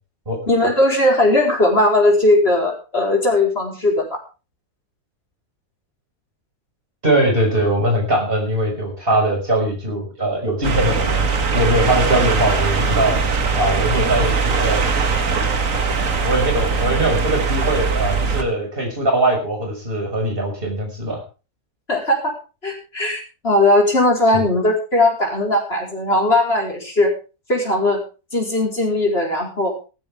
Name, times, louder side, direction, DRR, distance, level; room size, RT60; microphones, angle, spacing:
voice 1, 0.5-4.0 21.9-22.2 22.6-27.1 27.5-28.0 28.3-29.7, left 1 dB, 40° left, 0 dB, 5.0 m, -18 dB
voice 2, 7.0-11.2 11.5-13.2 13.5-14.9 16.2-21.2 24.3-24.4, right 1 dB, 35° right, 1 dB, 6.5 m, -21 dB
sound 1, 10.6-18.4, right 5 dB, 60° right, 2.0 m, -20 dB
16.0 x 14.5 x 3.7 m, 0.33 s
omnidirectional pair, 1.6 m